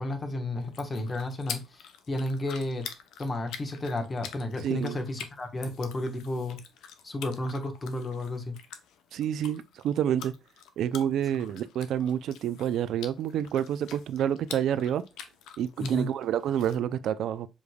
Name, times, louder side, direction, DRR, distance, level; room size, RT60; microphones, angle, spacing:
voice 1, 0.0-2.9 3.2-6.6 7.0-8.6 15.8-16.1, left 1 dB, 30° left, 1.3 m, -32 dB
sound 1, 0.6-16.8, left 8 dB, 85° left, 0.7 m, -46 dB
voice 2, 4.6-5.0 9.1-10.3 10.8-15.0 15.6-17.5, right 10 dB, 75° right, 0.4 m, -28 dB
7.1 x 3.2 x 2.3 m
cardioid pair, 90°, 0 cm